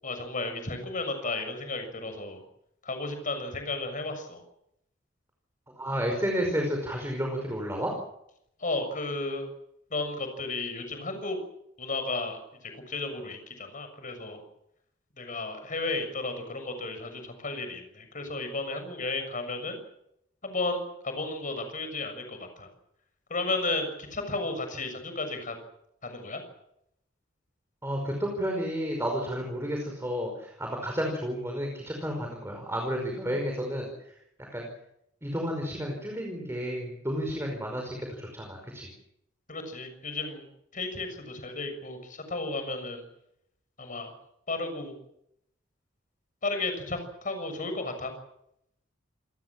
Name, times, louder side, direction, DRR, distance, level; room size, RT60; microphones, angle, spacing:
voice 1, 0.0-2.4 2.8-4.4 8.6-9.5 9.9-11.4 11.8-12.4 12.7-14.4 15.2-19.8 20.4-22.7 23.3-25.5 26.0-26.4 39.5-40.5 40.7-43.0 43.8-44.1 44.5-45.0 46.4-48.1, left 3 dB, 45° left, 7 dB, 6.8 m, -33 dB
voice 2, 5.8-7.9 27.8-34.1 34.5-34.7 35.2-38.9, equal, 15° right, 1 dB, 5.3 m, -31 dB
28.0 x 19.0 x 7.6 m, 0.78 s
head